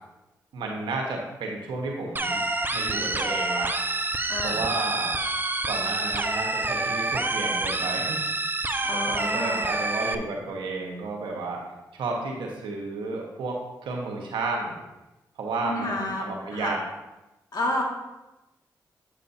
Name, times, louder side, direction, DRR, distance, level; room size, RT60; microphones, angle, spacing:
voice 1, 0.5-2.4 2.7-3.7 4.4-5.2 5.6-8.2 8.9-11.6 11.9-14.8 15.4-16.8, right 3 dB, 90° right, 0 dB, 1.2 m, -32 dB
sound 1, 2.2-10.2, right 2 dB, 25° right, 0.6 m, -27 dB
voice 2, 4.3-4.6 8.8-9.7 15.6-16.7 17.5-17.8, left 1 dB, 60° left, -1 dB, 2.0 m, -30 dB
7.9 x 7.2 x 2.7 m, 1.0 s
supercardioid pair, 45°, 8 cm